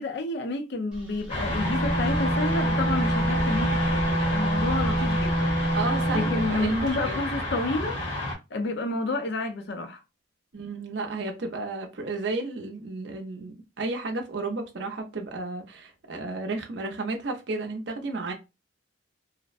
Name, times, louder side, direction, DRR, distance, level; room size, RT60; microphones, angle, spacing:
voice 1, 0.0-5.6 6.1-8.0 8.5-10.0, left 2 dB, 55° left, 0.5 m, -30 dB
sound 1, 1.3-8.3, left 1 dB, 30° left, 0.8 m, -30 dB
Wind instrument woodwind instrument, 1.4-6.5, right 1 dB, 5° right, 0.5 m, -26 dB
voice 2, 5.7-7.3 10.5-18.3, right 3 dB, 60° right, 0.5 m, -32 dB
2.5 x 2.0 x 2.4 m
head